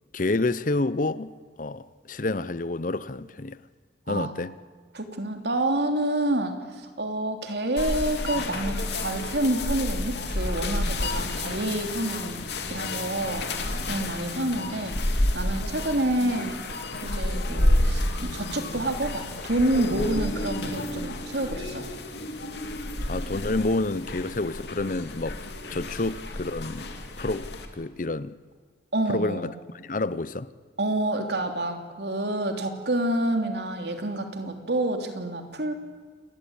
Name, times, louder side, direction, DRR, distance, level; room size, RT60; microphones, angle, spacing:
voice 1, 0.1-1.3 1.6-3.6 4.1-4.5 23.1-25.4 25.7-26.9 27.2-28.3 29.1-30.5, left 2 dB, 45° left, 0.7 m, -29 dB
voice 2, 4.9-12.4 12.7-13.5 13.9-15.0 15.3-16.6 17.0-21.9 28.9-29.5 30.8-35.7, right 1 dB, 65° right, 3.1 m, -28 dB
sound 1, 7.8-27.7, left 1 dB, 70° left, 2.6 m, -30 dB
28.5 x 20.5 x 8.9 m
head